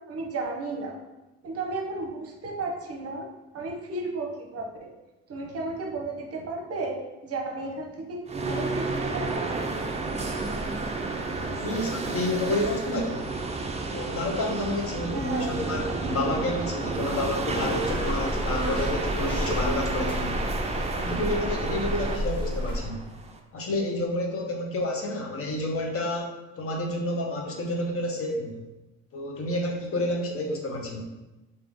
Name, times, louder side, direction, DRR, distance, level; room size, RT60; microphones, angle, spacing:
voice 1, 0.1-1.0 1.4-3.3 3.5-4.9 5.3-9.5 15.1-15.6, right 2 dB, 50° right, 1 dB, 0.8 m, -33 dB
sound 1, 8.3-23.4, right 3 dB, 20° right, 0.4 m, -31 dB
voice 2, 11.6-13.2 13.9-20.4 20.9-23.0 23.5-26.3 26.6-28.5 29.1-31.0, left 1 dB, 50° left, 0 dB, 0.8 m, -29 dB
sound 2, 17.8-22.8, equal, 15° left, 1.2 m, -31 dB
3.5 x 2.8 x 3.5 m, 1.1 s
cardioid pair, 90°, 30 cm